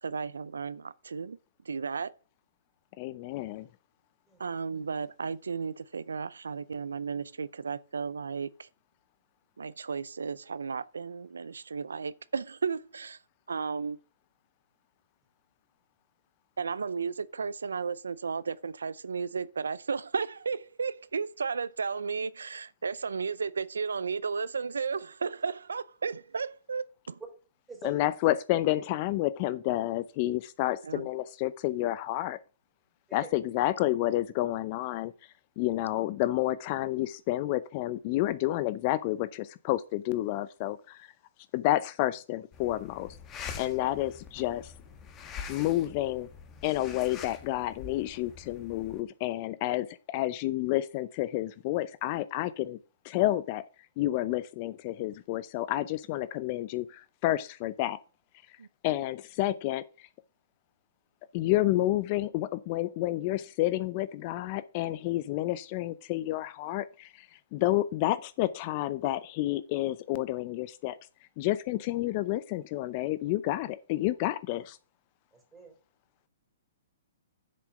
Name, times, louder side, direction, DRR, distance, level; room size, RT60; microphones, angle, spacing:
voice 1, 0.0-1.4 1.7-2.1 4.4-8.7 9.6-13.2 13.5-14.0 16.6-27.2 30.8-31.1 58.6-58.7, right 5 dB, 90° right, 0.5 m, -34 dB
voice 2, 3.0-3.7 27.8-32.4 33.1-35.1 35.6-41.1 41.5-44.7 45.5-46.3 46.6-52.8 53.0-53.6 54.0-58.0 58.8-60.1 61.3-67.3 67.5-71.0 71.4-74.8, left 15 dB, 40° left, 0.6 m, -30 dB
voice 3, 27.7-28.0 33.1-33.3 75.3-75.7, right 3 dB, 10° right, 3.7 m, -45 dB
sound 1, 42.5-49.0, left 6 dB, 25° left, 1.6 m, -45 dB
7.7 x 6.9 x 5.1 m
hypercardioid pair, 130°, 0 cm